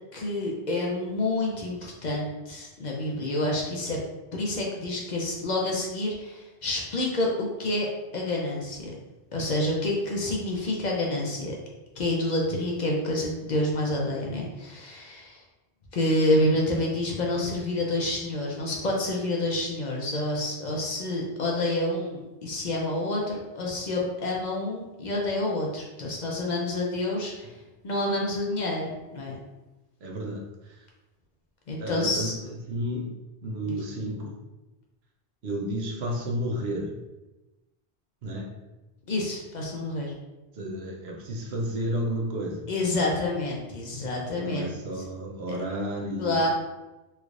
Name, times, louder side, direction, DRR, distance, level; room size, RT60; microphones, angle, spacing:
voice 1, 0.1-4.0 4.3-7.9 8.1-8.8 9.3-11.6 12.0-15.4 15.9-27.5 27.8-29.4 31.7-32.3 33.7-33.8 39.1-40.1 42.7-44.7 45.5-45.6 46.2-46.5, left 1 dB, 50° left, -1 dB, 0.7 m, -28 dB
voice 2, 30.0-30.9 31.8-33.1 33.4-34.3 35.4-36.9 38.2-38.5 40.5-42.7 44.3-46.5, equal, 85° right, -1 dB, 0.9 m, -32 dB
3.2 x 3.1 x 2.5 m, 1.1 s
omnidirectional pair, 1.0 m